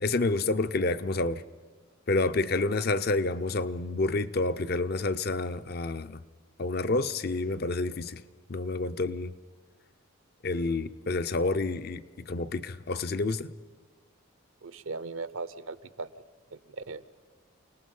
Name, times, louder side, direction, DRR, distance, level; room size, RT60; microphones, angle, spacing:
voice 1, 0.0-1.4 2.1-6.2 6.6-8.2 8.5-9.3 10.4-13.5, left 3 dB, 45° left, 0.5 m, -29 dB
voice 2, 14.6-16.1 16.5-17.1, right 3 dB, 70° right, 0.7 m, -38 dB
29.0 x 18.5 x 5.4 m
head